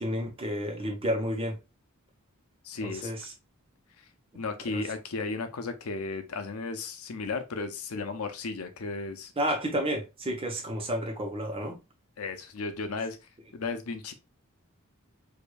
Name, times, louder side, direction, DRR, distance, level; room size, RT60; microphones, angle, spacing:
voice 1, 0.0-1.6 2.8-3.3 4.7-4.8 9.4-11.8, equal, 25° right, 1.0 m, -31 dB
voice 2, 2.6-3.1 4.3-9.3 12.2-13.2 13.5-14.1, left 3 dB, 90° left, 0.6 m, -34 dB
4.9 x 2.6 x 2.3 m
head